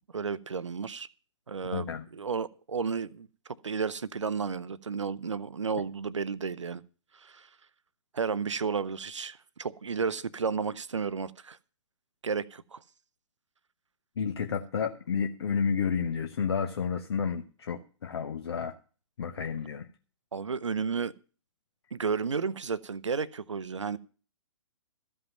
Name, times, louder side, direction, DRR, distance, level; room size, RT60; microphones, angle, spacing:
voice 1, 0.1-1.1 1.5-3.3 3.6-6.8 7.2-7.5 8.1-11.6 12.2-12.8 20.3-21.1 21.9-24.0, right 5 dB, 70° right, 0.7 m, -32 dB
voice 2, 1.7-2.0 14.2-18.7 19.2-19.9, left 6 dB, 55° left, 1.0 m, -31 dB
14.0 x 5.5 x 9.0 m
figure-of-eight pair, 120°, 16 cm